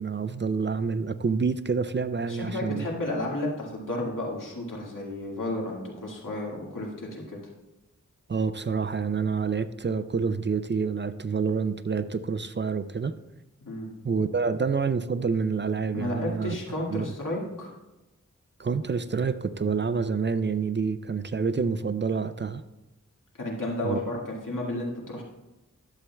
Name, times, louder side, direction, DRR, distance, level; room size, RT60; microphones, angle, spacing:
voice 1, 0.0-2.9 8.3-13.1 14.0-16.6 16.9-17.1 18.6-22.6 23.8-24.0, right 5 dB, 40° right, 13 dB, 0.4 m, -28 dB
voice 2, 2.3-7.4 13.6-13.9 15.9-17.7 23.4-25.2, left 1 dB, 85° left, -3 dB, 1.9 m, -32 dB
11.5 x 7.4 x 2.3 m, 0.98 s
wide cardioid pair, 55°, 31 cm